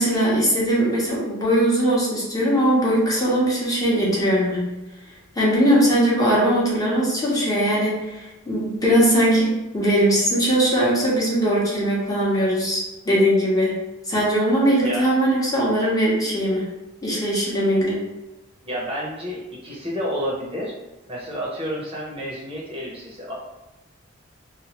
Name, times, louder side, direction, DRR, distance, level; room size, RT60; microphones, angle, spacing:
voice 1, 0.0-4.7 5.4-13.8 14.0-16.7 17.0-18.1, equal, 20° left, -6 dB, 0.7 m, -20 dB
voice 2, 18.6-20.7 21.1-23.3, equal, 25° right, -4 dB, 0.6 m, -30 dB
2.9 x 2.1 x 2.8 m, 1.0 s
head